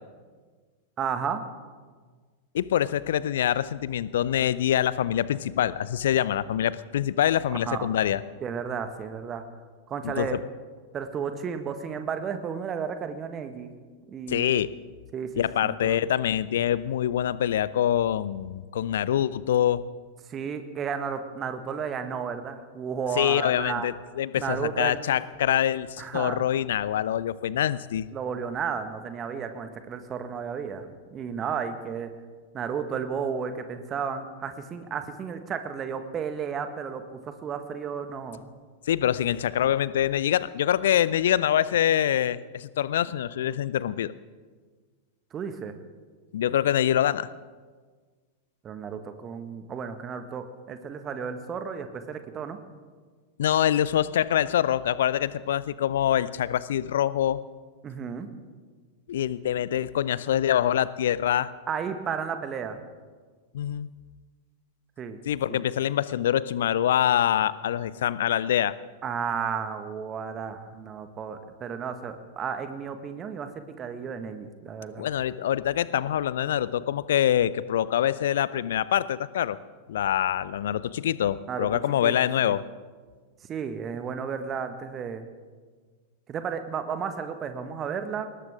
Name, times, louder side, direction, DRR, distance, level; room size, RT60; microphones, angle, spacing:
voice 1, 1.0-1.4 7.5-7.9 8.4-9.4 9.9-10.4 10.9-13.7 14.1-14.6 15.1-16.0 20.3-23.9 24.4-25.0 26.0-26.4 28.1-32.1 32.5-38.4 45.3-45.7 48.6-52.6 57.8-58.3 61.7-62.8 65.0-65.2 65.5-65.6 69.0-75.0 81.5-81.7 82.0-82.1 82.4-82.5 83.5-85.3 86.3-88.3, right 6 dB, 25° right, 8 dB, 1.6 m, -33 dB
voice 2, 2.5-8.2 10.0-10.4 14.3-14.7 15.3-19.8 23.2-28.1 38.9-44.1 46.3-47.3 53.4-57.4 59.1-61.5 63.5-63.9 65.3-68.7 75.0-79.6 79.9-82.6, left 11 dB, 60° left, 18 dB, 0.6 m, -25 dB
20.5 x 18.5 x 3.7 m, 1.5 s
figure-of-eight pair, 90°, 0 cm